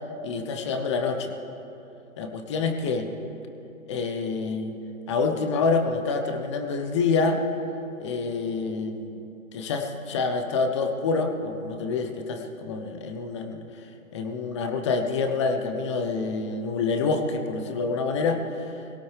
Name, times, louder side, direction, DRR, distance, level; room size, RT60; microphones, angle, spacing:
voice 1, 0.2-1.3 2.2-3.1 3.9-4.8 5.1-7.4 8.0-9.2 9.5-13.9 14.1-18.8, left 4 dB, 20° left, 5 dB, 0.8 m, -27 dB
21.0 x 17.5 x 3.4 m, 2.9 s
figure-of-eight pair, 140°, 42 cm